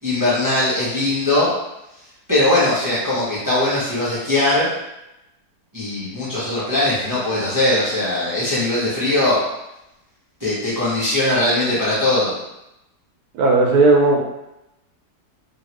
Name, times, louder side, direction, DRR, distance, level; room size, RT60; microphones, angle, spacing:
voice 1, 0.0-1.5 2.3-4.7 5.7-9.4 10.4-12.3, left 1 dB, 20° right, -9 dB, 0.5 m, -20 dB
voice 2, 13.3-14.2, right 3 dB, 70° right, 0 dB, 1.0 m, -14 dB
2.8 x 2.8 x 3.0 m, 0.90 s
omnidirectional pair, 1.8 m